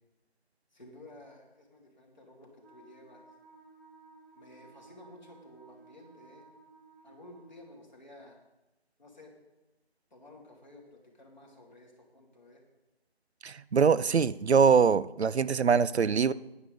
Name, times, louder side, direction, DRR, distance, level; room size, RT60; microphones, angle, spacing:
voice 1, 0.7-3.3 4.3-6.4 7.0-8.4 9.0-9.3 10.1-12.6, left 1 dB, 45° left, -1 dB, 2.8 m, -53 dB
Wind instrument woodwind instrument, 2.6-7.8, right 3 dB, 15° right, 2.7 m, -57 dB
voice 2, 13.4-16.3, right 6 dB, 80° right, 18 dB, 0.5 m, -23 dB
10.5 x 9.4 x 5.1 m, 0.98 s
figure-of-eight pair, 175°, 32 cm